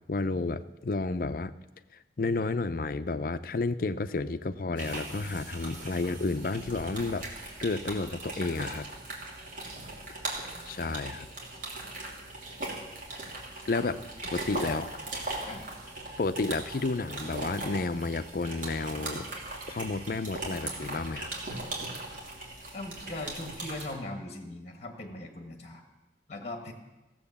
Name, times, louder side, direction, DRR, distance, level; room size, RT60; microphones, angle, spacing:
voice 1, 0.1-1.5 2.2-8.9 10.7-11.3 13.7-14.0 14.3-14.9 16.2-19.3 19.7-21.3, left 3 dB, 50° left, 13 dB, 0.5 m, -31 dB
sound 1, 4.8-23.9, right 2 dB, 50° right, 2.9 m, -39 dB
voice 2, 22.7-25.8 26.3-26.7, left 2 dB, 35° left, 4 dB, 1.4 m, -39 dB
15.5 x 7.7 x 7.1 m, 1.1 s
head